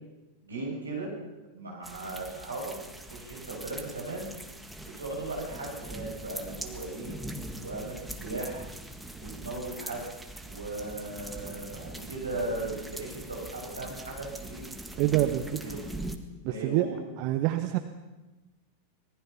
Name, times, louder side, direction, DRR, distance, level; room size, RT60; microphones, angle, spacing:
voice 1, 0.4-1.1 1.5-2.7 3.1-4.3 4.8-7.2 7.6-8.7 9.2-10.0 10.4-14.7 15.6-15.9 16.5-17.0, right 2 dB, 75° right, -2 dB, 7.7 m, -37 dB
sound 1, 1.8-16.2, right 1 dB, 5° right, 1.8 m, -42 dB
voice 2, 15.0-15.6 16.4-16.9 17.2-17.8, right 14 dB, 45° right, 8 dB, 1.2 m, -26 dB
25.5 x 19.0 x 5.9 m, 1.1 s
figure-of-eight pair, 90°, 0 cm